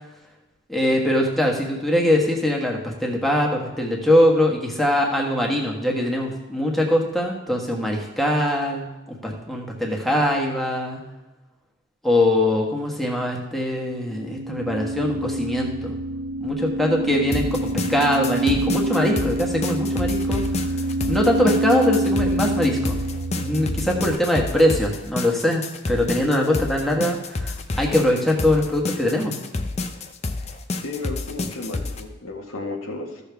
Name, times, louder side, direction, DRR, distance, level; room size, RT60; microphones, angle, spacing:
voice 1, 0.7-11.0 12.0-16.0 16.4-20.4 21.1-23.0 23.4-25.6 25.9-29.3, left 1 dB, ahead, -1 dB, 1.4 m, -22 dB
sound 1, 14.0-24.2, right 1 dB, 70° right, 0.4 m, -26 dB
sound 2, 17.3-32.0, left 3 dB, 30° left, 0.6 m, -29 dB
voice 2, 30.8-33.2, left 2 dB, 90° left, 1 dB, 1.6 m, -33 dB
14.5 x 6.7 x 3.5 m, 1.1 s
head